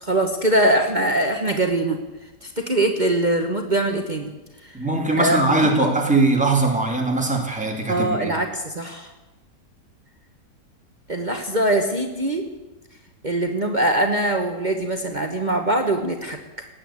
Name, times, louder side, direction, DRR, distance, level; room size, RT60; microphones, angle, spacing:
voice 1, 0.0-2.0 2.4-4.3 4.6-4.8 5.2-5.4 7.9-9.1 11.1-12.5 13.2-16.7, right 1 dB, 30° right, 4 dB, 1.3 m, -22 dB
voice 2, 4.7-8.3, right 2 dB, 5° right, 1 dB, 2.5 m, -21 dB
18.5 x 8.6 x 8.4 m, 1.1 s
omnidirectional pair, 1.8 m